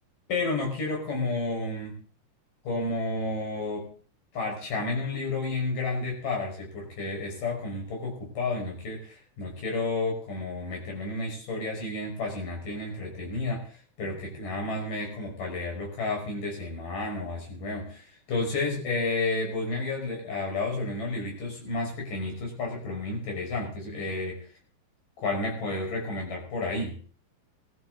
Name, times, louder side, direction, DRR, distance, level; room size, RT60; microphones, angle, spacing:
voice 1, 0.3-2.0 2.7-3.9 4.3-24.5 25.2-27.0, left 3 dB, 90° left, 0 dB, 7.0 m, -31 dB
20.5 x 13.5 x 4.0 m, 0.41 s
omnidirectional pair, 3.7 m